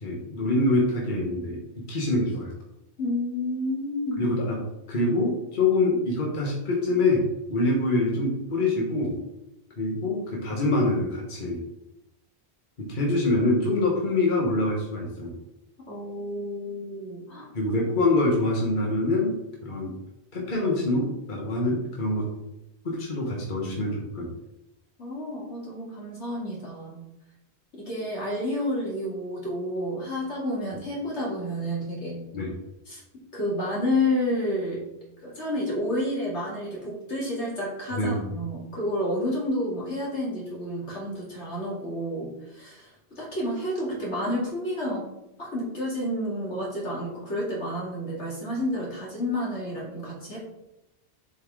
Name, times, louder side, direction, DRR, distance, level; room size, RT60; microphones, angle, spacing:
voice 1, 0.0-1.6 1.9-2.5 4.2-9.1 9.8-11.6 12.8-15.3 17.5-19.3 19.6-19.9 20.3-22.3 22.8-24.3 32.3-32.5 37.9-38.2, left 2 dB, 45° left, -2 dB, 1.5 m, -25 dB
voice 2, 3.0-4.3 15.9-17.5 25.0-27.0 27.8-32.3 32.9-33.0 33.3-34.9 35.2-45.0 45.4-50.4, left 1 dB, 85° left, -4 dB, 2.7 m, -30 dB
7.3 x 4.6 x 4.7 m, 0.91 s
omnidirectional pair, 1.1 m